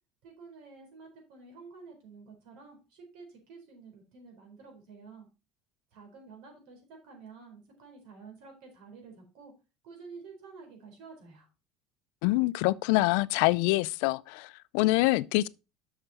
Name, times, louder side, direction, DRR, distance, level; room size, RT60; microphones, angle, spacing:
voice 1, 0.2-5.3 5.9-9.5 9.8-11.5, right 4 dB, 70° right, 4.2 m, -50 dB
voice 2, 12.2-15.5, left 20 dB, 80° left, 0.4 m, -25 dB
6.8 x 6.6 x 4.2 m
cardioid pair, 140°, 0 cm